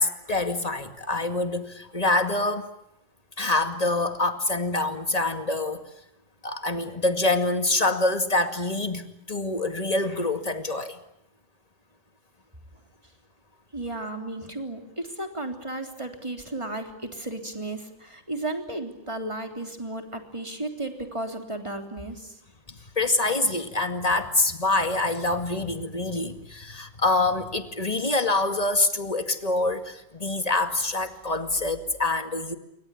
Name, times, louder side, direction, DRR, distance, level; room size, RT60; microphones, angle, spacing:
voice 1, 0.0-2.7 3.4-5.9 6.4-11.0 22.7-32.5, left 2 dB, 30° left, 8 dB, 2.2 m, -26 dB
voice 2, 13.7-22.4, right 2 dB, 20° right, 5 dB, 3.5 m, -34 dB
28.0 x 24.0 x 8.5 m, 0.83 s
omnidirectional pair, 1.4 m